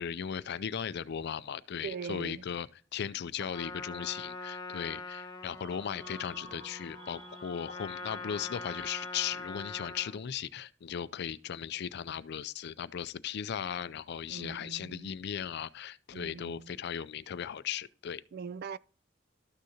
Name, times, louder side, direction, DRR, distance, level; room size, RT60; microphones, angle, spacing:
voice 1, 0.0-2.7 2.9-18.2, left 8 dB, 60° left, 0.4 m, -37 dB
voice 2, 1.8-2.4 14.3-15.1 16.1-16.7 18.3-18.8, right 5 dB, 55° right, 0.3 m, -41 dB
Trumpet, 3.3-10.2, left 3 dB, 20° left, 1.0 m, -43 dB
sound 1, 5.5-9.7, right 3 dB, 25° right, 0.7 m, -52 dB
13.0 x 6.3 x 2.8 m
head